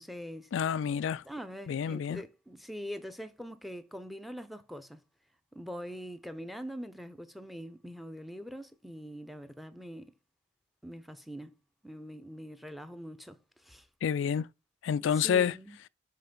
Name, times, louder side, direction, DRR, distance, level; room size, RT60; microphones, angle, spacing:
voice 1, 0.0-0.5 1.2-5.0 5.5-10.1 10.8-11.5 11.8-13.9 15.0-15.8, equal, ahead, 0.6 m, -43 dB
voice 2, 0.5-1.2 1.7-2.2 14.0-14.5 14.8-15.6, left 7 dB, 70° left, 0.3 m, -28 dB
5.7 x 5.5 x 5.2 m
head